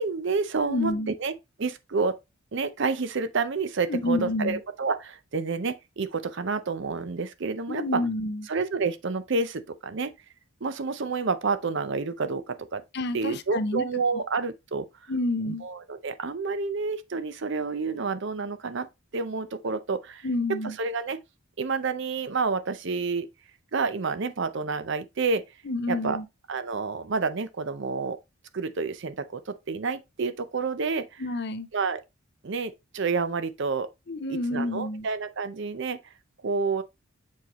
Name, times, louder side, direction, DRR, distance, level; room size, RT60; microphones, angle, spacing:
voice 1, 0.0-1.3 1.6-2.2 2.5-8.0 8.5-10.1 10.6-12.8 13.1-15.1 15.5-18.9 19.1-20.3 20.8-21.2 21.6-23.3 23.7-25.4 25.9-26.2 26.5-28.2 28.5-31.2 31.7-32.0 32.4-33.9 34.3-36.0 36.4-36.8, right 4 dB, 55° right, 0.6 m, -29 dB
voice 2, 0.6-1.1 3.9-4.6 7.7-8.5 12.9-13.9 15.1-15.6 20.2-20.8 25.6-26.3 31.2-31.7 34.1-35.1, left 2 dB, 50° left, 0.6 m, -29 dB
7.1 x 4.5 x 3.0 m
head